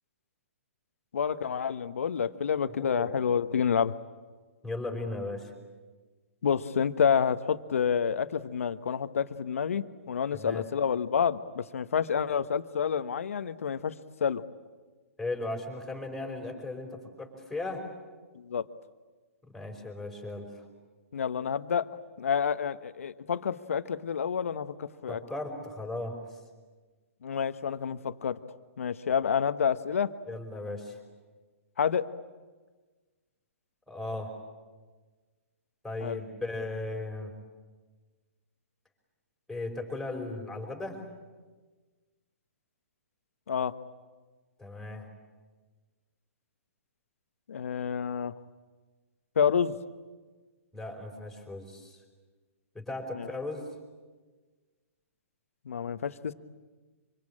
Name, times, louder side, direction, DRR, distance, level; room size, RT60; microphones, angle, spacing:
voice 1, 1.1-3.9 6.4-13.9 14.2-14.4 18.3-18.6 21.1-21.9 22.2-25.2 27.2-28.4 28.8-30.1 31.8-32.0 36.0-36.2 43.5-43.7 47.5-48.3 49.4-49.7 53.1-53.3 55.7-56.3, left 7 dB, 70° left, 12 dB, 1.2 m, -28 dB
voice 2, 2.7-3.1 4.6-5.5 10.3-10.6 15.2-17.9 19.4-20.7 25.1-26.2 30.3-31.0 33.9-34.4 35.8-37.3 39.5-41.0 44.6-45.1 50.7-52.0 52.8-53.7, left 2 dB, ahead, 1 dB, 5.2 m, -37 dB
26.0 x 25.5 x 8.8 m, 1.3 s
hypercardioid pair, 130°, 8 cm